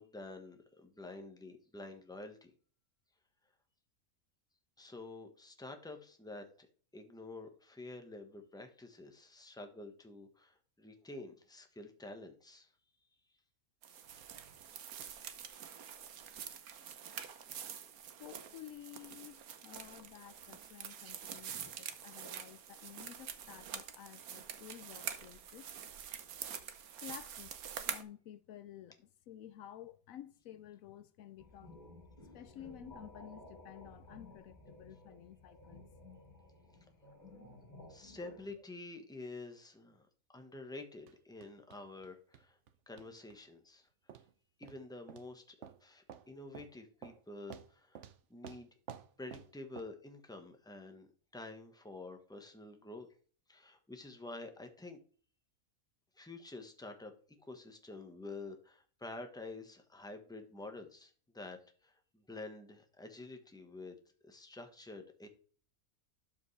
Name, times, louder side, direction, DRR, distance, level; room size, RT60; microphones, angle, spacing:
voice 1, 0.0-2.5 4.8-6.5 6.9-12.7 21.5-21.6 37.9-40.1 40.3-42.6 42.9-43.9 44.6-48.7 49.2-51.1 51.3-53.1 53.5-55.0 56.2-64.0 64.2-65.3, left 2 dB, 5° left, 1.2 m, -49 dB
sound 1, 13.8-28.0, right 8 dB, 90° right, 1.4 m, -46 dB
voice 2, 18.2-25.7 27.0-27.6 27.9-31.8 32.3-35.9, left 11 dB, 75° left, 1.0 m, -52 dB
sound 2, 31.4-38.5, left 2 dB, 30° left, 2.2 m, -55 dB
sound 3, 41.1-41.2 41.4-42.1 42.3-42.7 43.0-43.4 44.1-44.3 44.6-44.8 45.1-45.3 45.6-45.8 46.1-46.3 46.5-46.7 47.0-47.2 47.5-48.2 48.4-49.5 49.8-49.9, right 8 dB, 60° right, 1.0 m, -51 dB
12.5 x 5.2 x 3.3 m
omnidirectional pair, 1.5 m